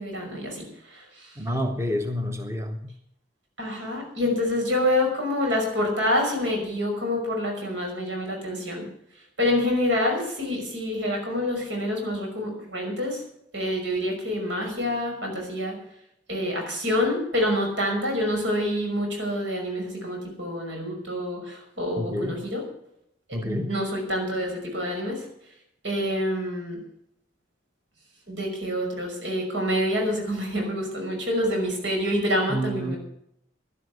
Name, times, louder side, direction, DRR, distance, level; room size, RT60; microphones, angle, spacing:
voice 1, 0.0-1.3 3.6-8.9 9.4-13.2 13.5-15.8 16.3-22.6 23.3-25.3 25.8-26.8 28.3-33.0, left 1 dB, 80° right, 2 dB, 5.9 m, -27 dB
voice 2, 1.4-2.9 22.0-22.4 23.3-23.7 32.5-32.9, equal, 15° right, 5 dB, 0.9 m, -29 dB
11.5 x 11.0 x 8.0 m, 0.75 s
head